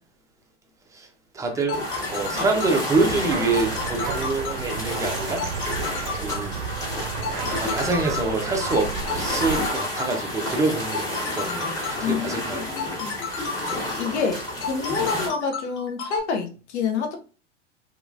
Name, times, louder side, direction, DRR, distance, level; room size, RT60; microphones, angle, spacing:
voice 1, 1.3-1.8 2.1-5.5 6.1-6.5 7.6-12.9, right 3 dB, 10° right, 0.5 m, -26 dB
sound 1, 1.4-16.2, left 5 dB, 35° left, 0.7 m, -33 dB
sound 2, 1.7-15.3, left 1 dB, 10° left, 1.2 m, -31 dB
sound 3, 2.9-9.7, right 7 dB, 55° right, 0.6 m, -33 dB
voice 2, 12.0-13.1 13.7-17.1, left 5 dB, 65° left, 0.8 m, -28 dB
2.9 x 2.3 x 2.5 m
hypercardioid pair, 90°, 36 cm